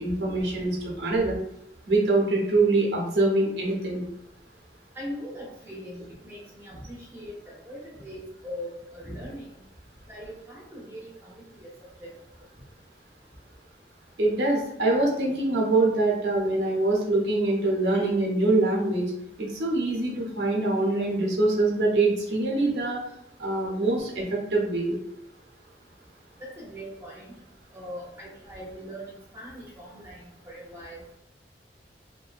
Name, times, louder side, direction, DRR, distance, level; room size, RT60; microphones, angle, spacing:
voice 1, 0.0-1.4 1.9-4.0 14.2-19.1 19.4-23.0 23.4-25.0, right 2 dB, 85° right, -2 dB, 0.7 m, -24 dB
voice 2, 4.9-9.6 10.1-11.7 12.0-12.1 26.4-27.3 27.7-31.0, equal, 15° right, -5 dB, 0.6 m, -41 dB
2.6 x 2.1 x 2.4 m, 0.79 s
head